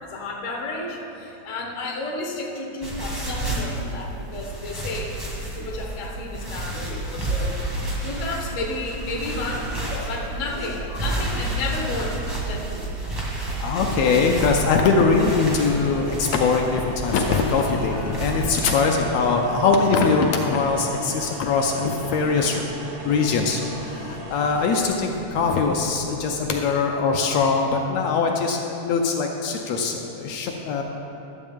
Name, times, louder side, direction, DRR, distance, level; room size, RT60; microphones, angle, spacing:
voice 1, 0.0-5.1 5.5-7.6 8.0-9.7 10.1-12.2 12.5-12.8, left 2 dB, 55° left, -3 dB, 0.8 m, -32 dB
sound 1, 2.8-18.7, right 1 dB, 20° right, 0.6 m, -30 dB
voice 2, 7.1-7.5 9.9-10.1 13.6-22.6 23.0-30.8, left 4 dB, 75° left, 2 dB, 1.7 m, -22 dB
sound 2, 13.8-26.8, right 2 dB, 85° right, 2.6 m, -38 dB
12.0 x 7.5 x 3.6 m, 3.0 s
omnidirectional pair, 3.4 m